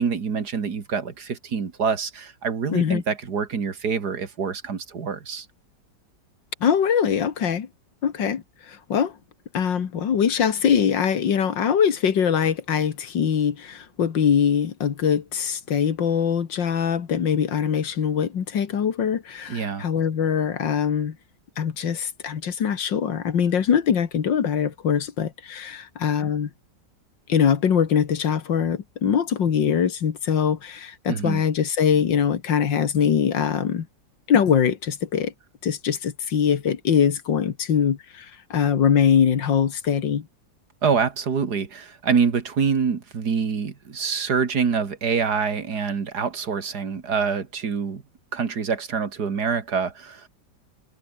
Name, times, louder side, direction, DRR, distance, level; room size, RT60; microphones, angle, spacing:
voice 1, 0.0-5.5 19.5-19.9 31.1-31.4 40.8-48.0 48.3-50.3, right 6 dB, 60° right, 2.5 m, -26 dB
voice 2, 2.7-3.0 6.6-7.7 8.0-9.1 9.5-21.2 21.6-26.5 27.3-33.9 34.3-35.3 35.6-40.3, left 7 dB, 85° left, 2.4 m, -22 dB
omnidirectional pair, 1.9 m